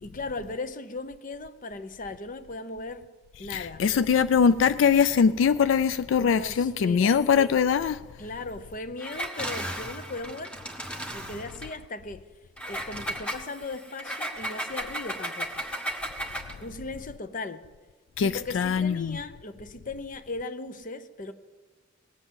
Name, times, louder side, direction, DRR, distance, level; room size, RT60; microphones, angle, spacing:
voice 1, 0.0-3.1 3.4-3.9 6.2-7.2 8.2-10.6 11.1-12.3 12.7-15.7 16.6-17.7 18.2-21.3, left 3 dB, 45° left, 0.8 m, -37 dB
voice 2, 3.5-8.0 18.2-19.2, left 6 dB, 80° left, 0.3 m, -22 dB
Engine, 9.0-11.7 12.6-16.6, right 1 dB, 5° left, 1.3 m, -35 dB
19.0 x 7.9 x 7.7 m
head